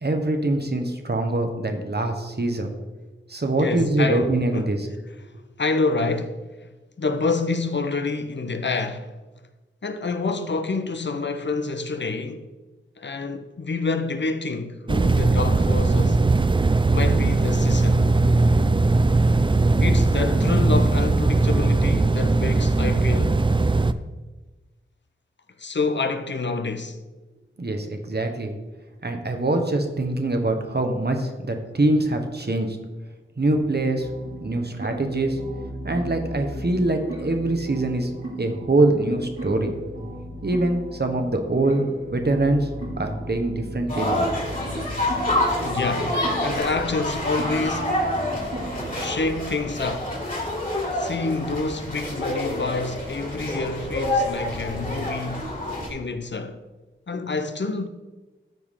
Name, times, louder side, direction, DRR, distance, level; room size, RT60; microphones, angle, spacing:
voice 1, 0.0-2.7 3.3-4.9 27.6-28.5 29.0-32.8 33.4-34.1 34.4-35.4 35.8-38.1 38.4-39.7 40.4-41.8 42.1-42.7 43.0-44.3, right 2 dB, 50° right, 1.2 m, -23 dB
voice 2, 3.6-4.7 5.6-6.4 7.0-9.1 9.8-12.5 13.0-16.3 16.9-18.1 19.8-23.4 25.6-27.0 45.6-48.1 49.0-50.1 51.0-55.5 55.9-56.6 57.1-57.9, left 3 dB, 60° left, 0.7 m, -27 dB
sound 1, 14.9-23.9, right 3 dB, 25° right, 0.4 m, -19 dB
sound 2, 34.0-49.1, right 1 dB, 85° right, 2.2 m, -36 dB
sound 3, 43.9-55.9, left 1 dB, 40° left, 3.0 m, -27 dB
13.5 x 4.7 x 3.7 m
wide cardioid pair, 55°, 21 cm